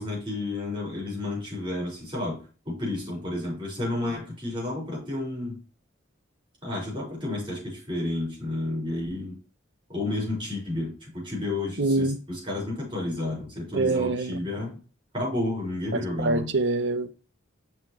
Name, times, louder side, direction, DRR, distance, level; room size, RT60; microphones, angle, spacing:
voice 1, 0.0-5.6 6.6-9.4 9.9-14.8 15.1-16.5, left 2 dB, 25° right, 4.1 m, -31 dB
voice 2, 11.8-12.2 13.7-14.4 15.9-17.1, right 3 dB, 70° right, 0.7 m, -25 dB
6.9 x 5.6 x 3.0 m
head